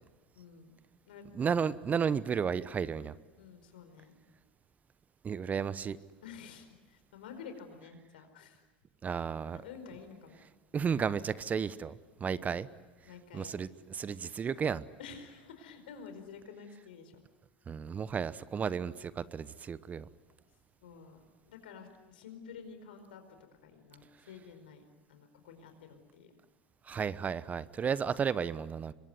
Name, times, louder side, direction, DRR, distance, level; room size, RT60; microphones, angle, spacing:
voice 1, 0.3-0.8 1.1-1.3 3.4-4.1 6.2-8.6 9.5-10.4 12.2-12.6 13.0-13.6 14.3-14.4 15.0-17.1 20.8-21.2 21.5-23.2 23.6-24.8 25.1-26.3, left 6 dB, 75° left, 7 dB, 4.7 m, -50 dB
voice 2, 1.3-3.1 5.2-6.0 9.0-9.6 10.7-12.7 13.3-14.8 17.7-20.1 26.9-28.9, right 6 dB, 30° right, 17 dB, 1.0 m, -33 dB
26.5 x 23.0 x 9.5 m, 1.2 s
hypercardioid pair, 80°, 5 cm